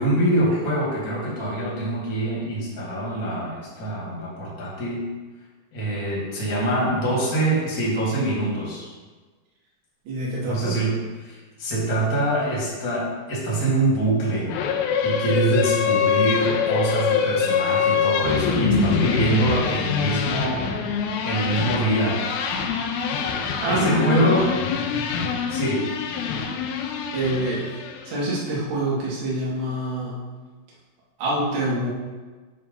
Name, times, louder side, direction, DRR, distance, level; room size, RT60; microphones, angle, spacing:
voice 1, 0.0-5.0 5.7-8.9 10.4-14.5 15.0-20.6 21.2-22.2 23.7-24.5 25.5-25.8, right 1 dB, 30° left, -6 dB, 1.6 m, -24 dB
voice 2, 10.0-10.8 23.6-24.5 27.1-27.7 28.0-30.2 31.2-31.9, right 1 dB, 50° right, -6 dB, 2.7 m, -26 dB
sound 1, 14.5-28.1, left 6 dB, 90° left, 2.2 m, -24 dB
9.5 x 3.2 x 5.3 m, 1.3 s
omnidirectional pair, 5.1 m